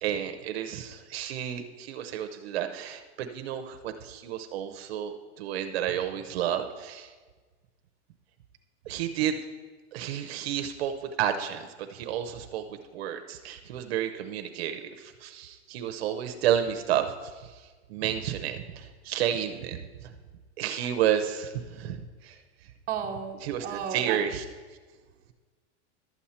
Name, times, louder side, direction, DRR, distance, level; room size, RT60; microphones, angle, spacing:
voice 1, 0.0-7.1 8.9-9.4 9.9-12.6 12.9-19.8 20.6-22.4 23.4-24.4, right 10 dB, 60° right, 7 dB, 0.7 m, -31 dB
voice 2, 22.9-24.2, right 8 dB, 25° right, -1 dB, 0.9 m, -33 dB
12.0 x 7.2 x 4.3 m, 1.4 s
supercardioid pair, 165°, 35 cm